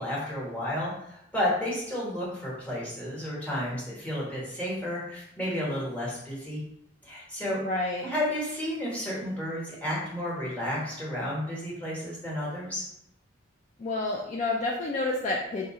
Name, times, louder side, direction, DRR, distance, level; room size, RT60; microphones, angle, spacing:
voice 1, 0.0-6.6 7.0-7.6 8.0-12.8, left 1 dB, 5° left, -7 dB, 1.2 m, -32 dB
voice 2, 7.5-8.1 13.8-15.7, left 2 dB, 40° left, -2 dB, 0.3 m, -29 dB
2.7 x 2.5 x 4.2 m, 0.77 s
head